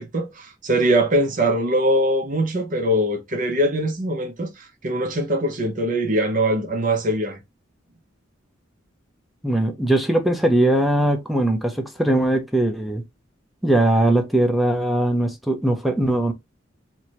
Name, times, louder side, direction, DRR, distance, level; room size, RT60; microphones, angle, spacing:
voice 1, 0.0-7.4, right 1 dB, 45° right, 0.7 m, -22 dB
voice 2, 9.4-13.0 13.6-16.3, right 1 dB, ahead, 0.5 m, -20 dB
4.5 x 2.2 x 2.9 m
head